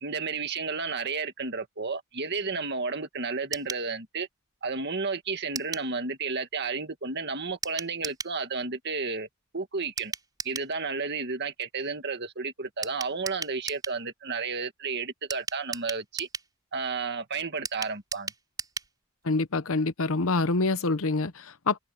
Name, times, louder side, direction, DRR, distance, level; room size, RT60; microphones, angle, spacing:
voice 1, 0.0-4.3 4.6-9.3 9.5-10.1 10.4-16.3 16.7-18.3, right 4 dB, 50° right, 2.0 m, -32 dB
sound 1, 3.5-3.9 5.5-5.9 7.6-8.4 10.0-10.7 12.8-14.0 15.3-16.5 17.6-18.9 19.2-19.3 19.6-19.7, right 4 dB, 20° right, 4.1 m, -36 dB
voice 2, 19.2-21.8, left 3 dB, 65° left, 0.9 m, -26 dB
head